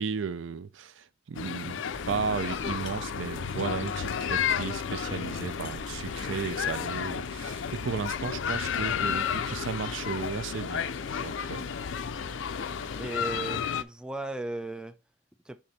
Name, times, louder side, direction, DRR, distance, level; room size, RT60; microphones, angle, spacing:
voice 1, 0.0-10.9 11.2-11.7, right 5 dB, 75° right, 0.5 m, -34 dB
sound 1, 1.3-13.8, left 7 dB, 70° left, 0.4 m, -32 dB
sound 2, 1.9-13.1, right 1 dB, 40° right, 1.2 m, -46 dB
voice 2, 13.0-15.0 15.5-15.6, right 2 dB, 5° right, 0.3 m, -36 dB
6.7 x 3.5 x 4.2 m
head